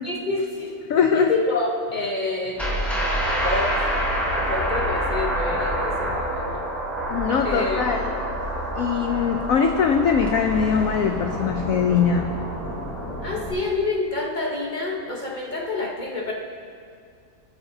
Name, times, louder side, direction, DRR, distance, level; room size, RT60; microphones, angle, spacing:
voice 1, 0.0-0.8 1.1-2.6 3.4-3.9 4.3-6.6 7.4-7.9 13.2-16.3, left 3 dB, 35° left, -1 dB, 0.8 m, -27 dB
voice 2, 0.9-1.3 7.1-8.1 8.8-12.3, left 6 dB, 85° left, 4 dB, 0.7 m, -21 dB
sound 1, 2.6-13.5, right 1 dB, ahead, 1.9 m, -27 dB
19.5 x 7.1 x 2.7 m, 2.3 s
omnidirectional pair, 2.0 m